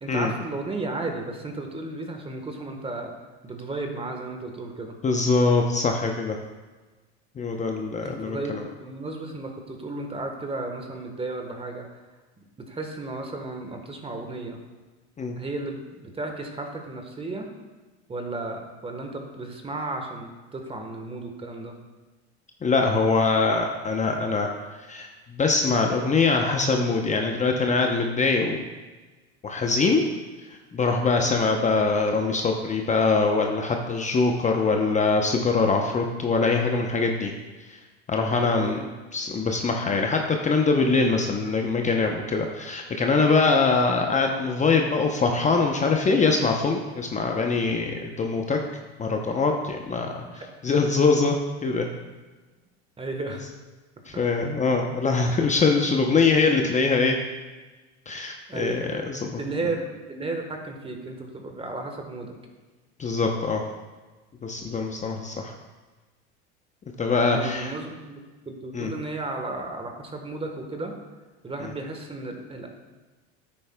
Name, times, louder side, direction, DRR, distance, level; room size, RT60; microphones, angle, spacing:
voice 1, 0.0-3.1 3.4-4.9 8.0-11.9 12.7-14.6 15.4-17.5 18.1-21.7 31.2-31.4 38.5-38.8 50.2-50.5 50.7-50.9 53.0-53.4 54.1-54.2 58.5-62.4 67.1-68.2 68.4-70.9 71.4-72.7, right 2 dB, 15° right, 4 dB, 1.2 m, -34 dB
voice 2, 5.0-6.4 7.4-8.6 15.2-15.4 22.6-24.5 24.9-28.6 29.4-30.0 30.5-37.3 37.6-37.8 38.1-38.8 39.1-48.6 49.0-50.1 50.6-51.9 54.1-57.2 58.1-59.3 63.0-63.6 64.4-65.5 67.0-67.7 68.7-68.9, left 4 dB, 20° left, 2 dB, 0.7 m, -23 dB
9.9 x 8.5 x 2.2 m, 1.3 s
supercardioid pair, 100°, 33 cm